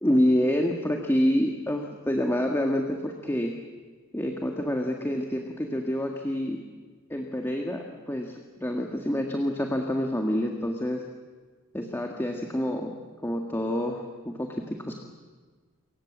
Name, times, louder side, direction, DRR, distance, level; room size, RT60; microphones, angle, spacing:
voice 1, 0.0-3.5 4.1-6.6 7.1-11.0 11.7-12.9 13.2-14.9, equal, 10° left, 2 dB, 1.9 m, -27 dB
29.0 x 25.0 x 7.5 m, 1.4 s
head